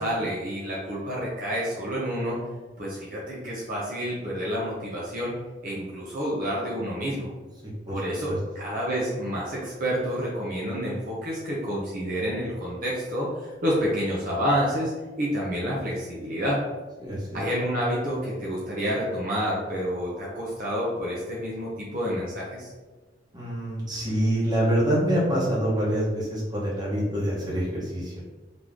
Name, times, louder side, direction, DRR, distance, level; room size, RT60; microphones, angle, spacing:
voice 1, 0.0-2.4 2.8-5.3 5.6-7.3 7.9-14.9 15.2-16.6 17.3-22.7, equal, 50° right, -5 dB, 0.9 m, -29 dB
voice 2, 7.6-8.0 8.3-8.4 17.0-17.4 23.3-28.1, right 1 dB, 25° right, -6 dB, 1.5 m, -26 dB
3.9 x 3.2 x 3.7 m, 1.3 s
head